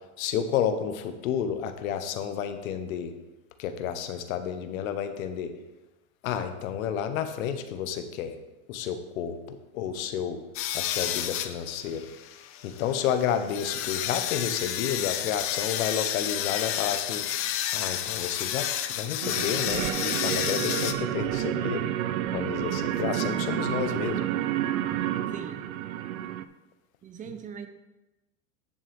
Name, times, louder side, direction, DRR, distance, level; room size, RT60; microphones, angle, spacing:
voice 1, 0.2-3.1 3.6-5.5 6.2-8.4 8.7-10.4 10.7-12.1 12.6-17.3 17.7-21.9 22.3-24.2, left 8 dB, 85° left, 8 dB, 1.1 m, -31 dB
sound 1, 10.5-20.9, left 11 dB, 35° left, 0.6 m, -31 dB
sound 2, 19.2-26.4, right 12 dB, 85° right, 0.6 m, -29 dB
voice 2, 25.3-25.7 27.0-27.7, right 7 dB, 20° right, 9 dB, 0.6 m, -40 dB
9.8 x 7.2 x 3.5 m, 1.0 s
supercardioid pair, 140°, 40 cm